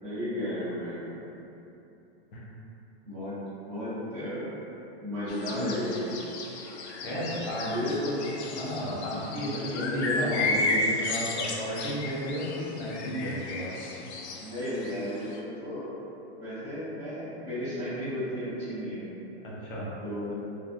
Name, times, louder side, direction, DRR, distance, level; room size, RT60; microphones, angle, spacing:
voice 1, 0.0-1.1 3.0-3.3 3.6-4.5 5.0-6.2 7.6-8.2 9.5-10.9 14.4-15.9 16.4-19.0 20.0-20.3, left 1 dB, 15° right, -19 dB, 0.3 m, -33 dB
sound 1, 5.3-15.4, left 2 dB, 90° left, 0.5 m, -34 dB
voice 2, 7.0-7.7 8.5-13.7 19.4-19.9, equal, 55° left, -5 dB, 0.8 m, -33 dB
3.3 x 2.3 x 2.3 m, 2.9 s
supercardioid pair, 180°, 32 cm